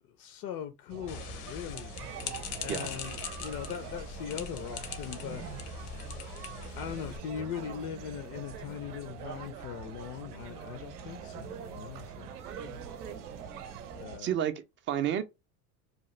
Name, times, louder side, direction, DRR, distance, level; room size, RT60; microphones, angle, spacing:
voice 1, 0.2-1.9 2.6-5.4 6.8-12.3 12.6-12.8 14.0-14.4, left 9 dB, 50° left, 0.5 m, -40 dB
sound 1, 0.9-14.2, right 7 dB, 45° right, 0.8 m, -46 dB
sound 2, 1.1-7.2, left 7 dB, 70° left, 0.9 m, -41 dB
sound 3, 1.9-14.0, right 8 dB, 90° right, 0.6 m, -47 dB
voice 2, 14.2-15.2, right 10 dB, 30° right, 0.4 m, -31 dB
2.9 x 2.2 x 3.1 m
hypercardioid pair, 85°, 46 cm